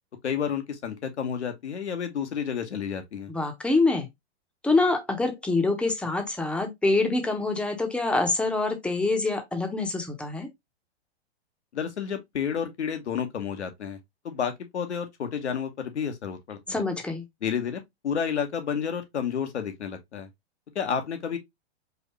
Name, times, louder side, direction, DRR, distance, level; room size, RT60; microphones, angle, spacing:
voice 1, 0.2-3.3 11.7-14.0 14.2-16.8 17.4-20.3 20.7-21.4, left 7 dB, 90° left, 1.3 m, -30 dB
voice 2, 3.3-4.1 4.6-10.5 16.7-17.2, left 3 dB, 5° left, 0.8 m, -25 dB
4.7 x 2.6 x 3.1 m
hypercardioid pair, 130°, 33 cm